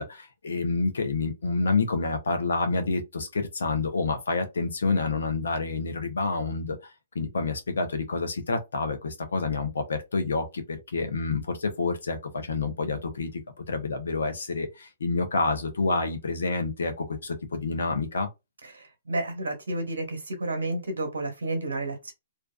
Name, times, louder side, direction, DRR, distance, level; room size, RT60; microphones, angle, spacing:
voice 1, 0.0-6.8 7.1-13.3 13.7-18.3, left 3 dB, 80° left, 0.7 m, -28 dB
voice 2, 18.6-22.1, right 2 dB, 80° right, 0.9 m, -31 dB
2.6 x 2.2 x 2.2 m
hypercardioid pair, 130°, 0 cm